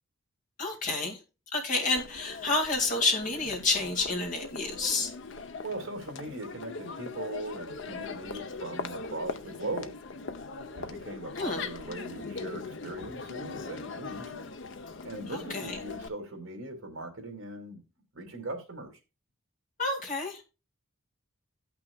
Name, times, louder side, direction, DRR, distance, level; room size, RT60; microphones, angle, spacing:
voice 1, 0.6-1.2 1.5-5.1 11.4-11.7 15.3-15.8 19.8-20.4, left 3 dB, 35° left, 2.1 m, -29 dB
Crowd, 2.0-16.1, left 4 dB, 60° left, 0.6 m, -40 dB
voice 2, 5.6-10.0 10.7-14.3 15.0-17.8 18.1-18.9, right 2 dB, 70° right, 2.4 m, -39 dB
17.0 x 6.0 x 2.3 m
head